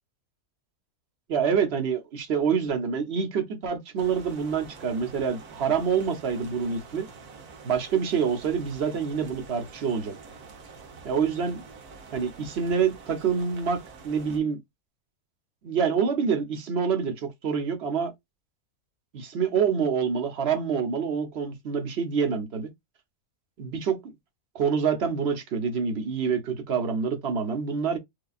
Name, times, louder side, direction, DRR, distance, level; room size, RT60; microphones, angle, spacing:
voice 1, 1.3-7.1 7.6-10.2 11.0-11.6 12.1-13.8 14.0-14.6 15.6-18.1 19.1-22.7 23.6-24.1 24.5-28.0, right 6 dB, 50° right, 1.1 m, -26 dB
sound 1, 4.0-14.4, right 4 dB, 80° right, 1.5 m, -47 dB
4.8 x 2.3 x 2.4 m
omnidirectional pair, 1.6 m